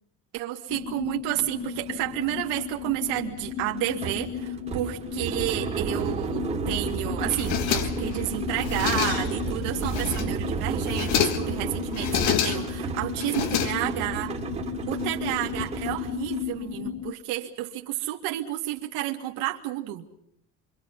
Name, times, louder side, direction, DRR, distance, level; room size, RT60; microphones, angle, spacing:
voice 1, 0.3-14.3 14.9-20.1, right 15 dB, 90° right, 2 dB, 2.3 m, -31 dB
sound 1, 0.7-17.1, left 9 dB, 35° left, 0.9 m, -35 dB
sound 2, 1.3-1.4 1.7-16.5, right 5 dB, 20° right, 2.4 m, -33 dB
sound 3, 7.3-8.2 8.6-9.4 9.8-10.4 10.8-11.6 11.9-12.8 13.2-14.2, left 10 dB, 70° left, 1.6 m, -28 dB
28.5 x 25.0 x 5.5 m, 0.69 s
cardioid pair, 175°, 30 cm